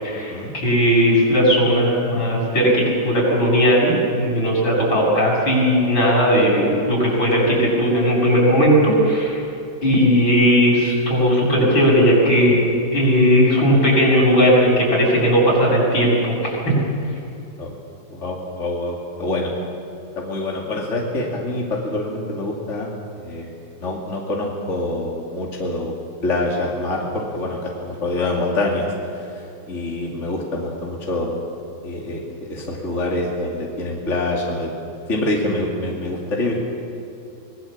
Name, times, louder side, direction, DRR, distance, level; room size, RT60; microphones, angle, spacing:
voice 1, 0.0-9.4 9.8-12.6 12.9-16.7, equal, 75° left, -3 dB, 7.9 m, -17 dB
voice 2, 18.1-19.5 20.2-22.9 23.2-23.5 23.8-25.9 26.2-28.9 29.7-31.4 31.8-32.2 32.5-34.7 35.1-36.5, left 2 dB, 35° left, -2 dB, 2.8 m, -25 dB
24.5 x 21.0 x 7.3 m, 2.7 s
omnidirectional pair, 2.2 m